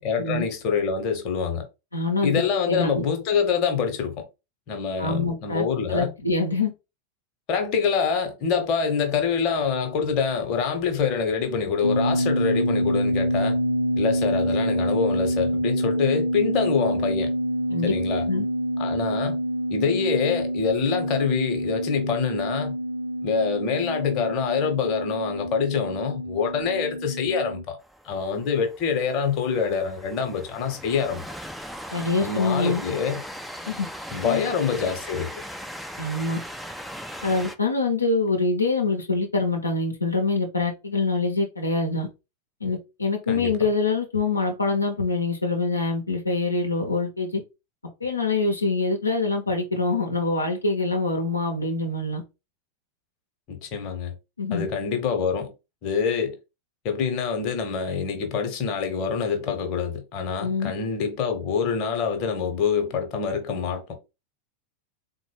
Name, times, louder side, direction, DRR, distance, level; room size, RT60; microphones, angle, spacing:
voice 1, 0.0-1.6 2.2-4.2 4.7-6.1 7.5-13.6 14.0-17.3 17.8-18.3 18.8-19.4 19.7-22.7 23.2-27.8 28.0-31.2 32.2-33.2 34.1-35.3 43.3-43.6 53.5-54.1 54.5-55.5 55.8-56.4 56.8-63.9, left 6 dB, 40° left, 0.9 m, -25 dB
voice 2, 1.9-2.3 2.7-3.1 5.0-5.6 5.9-6.7 17.7-17.9 18.3-18.4 31.9-32.8 33.7-33.9 34.2-34.4 36.0-36.4 37.2-42.1 42.6-47.4 48.0-52.2 54.4-54.7 60.4-60.7, left 3 dB, 80° left, 0.7 m, -25 dB
sound 1, 11.8-27.6, equal, 85° right, 0.4 m, -26 dB
Train, 27.8-37.5, equal, ahead, 0.4 m, -39 dB
3.9 x 2.1 x 3.3 m
figure-of-eight pair, 90°, 0 cm